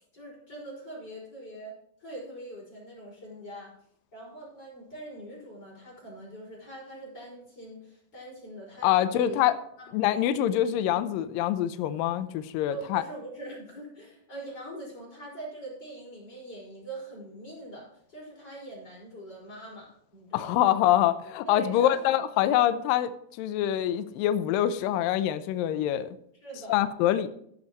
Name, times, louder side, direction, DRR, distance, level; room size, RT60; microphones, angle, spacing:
voice 1, 0.1-1.7 2.0-3.7 4.1-9.4 9.8-9.9 12.7-20.5 21.4-22.1 22.5-22.6 26.4-26.9, right 1 dB, 25° left, -3 dB, 5.8 m, -42 dB
voice 2, 8.8-9.5 9.9-13.0 20.3-23.1 23.4-26.2 26.7-27.3, left 12 dB, 90° left, 12 dB, 2.0 m, -25 dB
13.5 x 10.5 x 3.0 m, 0.70 s
omnidirectional pair, 4.8 m